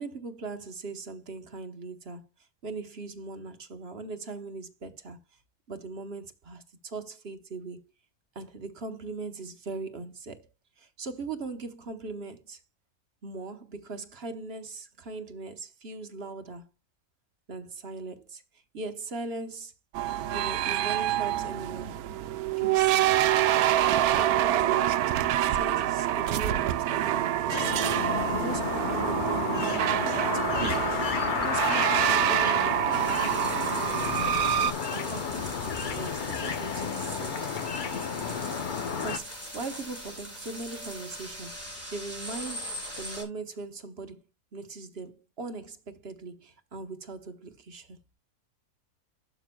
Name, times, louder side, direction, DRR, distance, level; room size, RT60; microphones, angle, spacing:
voice 1, 0.0-2.3 2.6-5.2 5.7-7.8 8.3-10.5 10.8-12.6 13.2-16.7 17.5-19.7 20.3-22.0 22.5-23.2 24.1-25.1 25.4-31.0 31.4-33.4 33.6-34.2 34.9-37.5 39.0-44.2 44.5-48.0, right 3 dB, 50° right, 1.2 m, -40 dB
sound 1, 19.9-34.7, right 12 dB, 80° right, 1.1 m, -26 dB
sound 2, 27.5-39.2, left 6 dB, 45° left, 0.7 m, -31 dB
sound 3, 32.9-43.2, equal, 10° left, 3.4 m, -41 dB
12.0 x 6.0 x 2.3 m
omnidirectional pair, 1.5 m